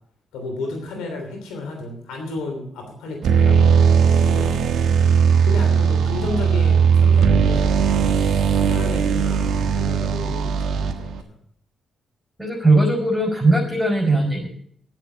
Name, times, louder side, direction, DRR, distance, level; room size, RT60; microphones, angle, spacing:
voice 1, 0.3-3.6 4.2-4.7 5.4-8.1 8.6-11.3, left 2 dB, 90° left, 3 dB, 3.1 m, -32 dB
sound 1, 3.2-11.2, right 6 dB, 75° right, 1.2 m, -18 dB
voice 2, 12.4-14.5, right 2 dB, ahead, 0 dB, 4.9 m, -19 dB
10.5 x 7.4 x 8.6 m, 0.64 s
supercardioid pair, 55°, 0 cm